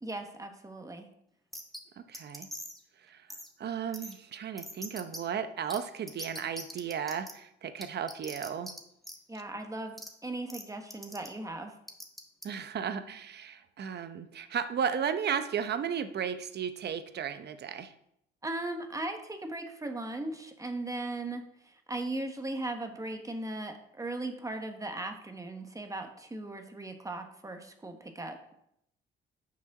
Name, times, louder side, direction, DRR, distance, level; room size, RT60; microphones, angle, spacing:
voice 1, 0.0-1.1 9.3-10.0 10.2-11.7 18.4-28.4, right 2 dB, 15° right, 5 dB, 1.2 m, -38 dB
sound 1, 1.5-1.8 2.1-2.8 3.3-3.5 3.9-4.1 4.6-5.2 5.7-5.8 6.1-7.3 7.8-8.8 9.0-9.2 10.0-10.1 10.5-10.6 10.9-11.3 11.9-12.4, equal, ahead, 1.4 m, -42 dB
voice 2, 2.0-2.5 3.1-3.3 3.6-8.7 12.4-17.9, right 7 dB, 55° right, 10 dB, 0.9 m, -34 dB
7.2 x 6.2 x 6.0 m, 0.77 s
cardioid pair, 90°, 20 cm